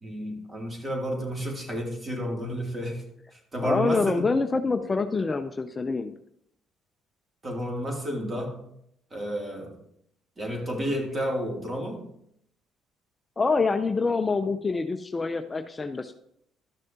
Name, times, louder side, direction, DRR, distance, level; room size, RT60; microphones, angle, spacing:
voice 1, 0.0-3.0 3.3-4.3 7.4-8.6 9.1-9.7 10.4-12.0, equal, 30° right, 0 dB, 2.7 m, -31 dB
voice 2, 3.6-6.1 13.4-16.1, left 4 dB, 25° left, 8 dB, 0.6 m, -26 dB
12.5 x 6.4 x 2.9 m, 0.73 s
supercardioid pair, 75°, 0 cm